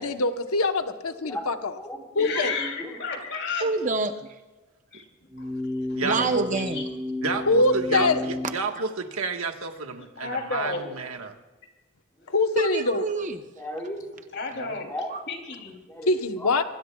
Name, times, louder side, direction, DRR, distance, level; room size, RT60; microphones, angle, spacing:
voice 1, 0.0-1.7 2.2-2.5 7.5-8.2 12.3-13.0 16.1-16.6, left 2 dB, 85° left, 7 dB, 1.1 m, -23 dB
voice 2, 1.1-1.5 1.8-2.7 12.2-12.3 13.6-14.2 14.7-15.4 15.9-16.1 16.4-16.6, equal, 10° left, 0 dB, 3.4 m, -36 dB
voice 3, 2.2-2.7 3.0-3.7 4.9-5.0 6.5-6.8 10.0-11.0 12.2-12.3 14.3-14.9 15.3-15.8, left 4 dB, 50° left, 2 dB, 3.1 m, -32 dB
voice 4, 3.6-4.3 6.0-6.9 8.8-8.9 12.6-13.4 15.1-15.2, right 3 dB, 35° right, 7 dB, 0.8 m, -27 dB
sound 1, 5.3-8.5, left 1 dB, 10° right, 6.9 m, -32 dB
voice 5, 6.0-6.5 7.2-11.3 14.5-14.8, right 4 dB, 80° right, 5 dB, 1.5 m, -30 dB
26.5 x 20.5 x 2.4 m, 1.2 s
head